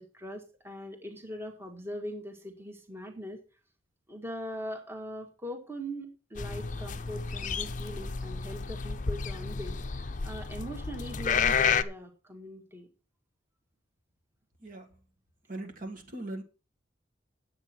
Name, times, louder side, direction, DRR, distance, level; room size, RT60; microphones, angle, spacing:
voice 1, 0.0-3.4 4.1-12.9, equal, 15° right, 1.8 m, -41 dB
sound 1, 6.3-11.8, left 6 dB, 40° left, 0.6 m, -31 dB
voice 2, 14.6-15.0 15.5-16.4, right 1 dB, 45° right, 1.9 m, -40 dB
9.7 x 8.3 x 5.9 m
head